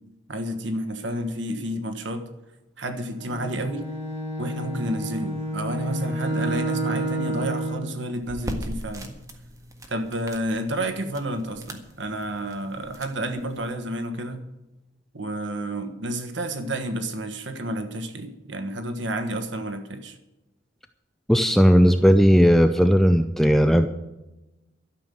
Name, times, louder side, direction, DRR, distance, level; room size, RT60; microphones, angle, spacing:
voice 1, 0.3-2.3 2.8-3.9 4.4-9.2 9.9-14.4 15.1-20.2, right 1 dB, 70° right, 6 dB, 1.4 m, -30 dB
Bowed string instrument, 3.2-7.9, right 1 dB, 35° right, 3.0 m, -29 dB
sound 1, 8.2-13.7, equal, 15° right, 1.6 m, -40 dB
voice 2, 21.3-23.9, equal, ahead, 7 dB, 0.5 m, -16 dB
13.0 x 6.9 x 9.2 m, 0.99 s
head